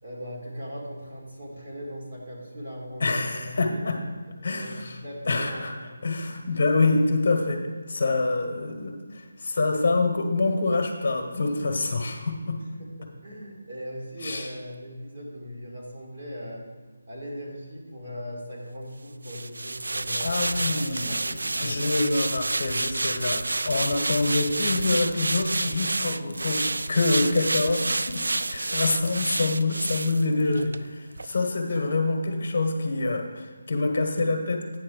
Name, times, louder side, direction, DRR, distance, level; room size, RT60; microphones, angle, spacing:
voice 1, 0.0-4.0 4.4-5.7 12.6-16.6 17.1-22.0, equal, 45° right, -4 dB, 2.2 m, -39 dB
voice 2, 3.0-4.0 4.4-5.0 5.3-5.7 6.0-7.6 7.9-12.6 14.2-14.5 20.2-21.2 21.6-34.6, left 3 dB, 45° left, 3 dB, 1.2 m, -26 dB
sound 1, 19.2-30.8 31.2-31.3, right 2 dB, 90° right, 0.3 m, -29 dB
9.0 x 4.3 x 6.4 m, 1.4 s
figure-of-eight pair, 175°, 0 cm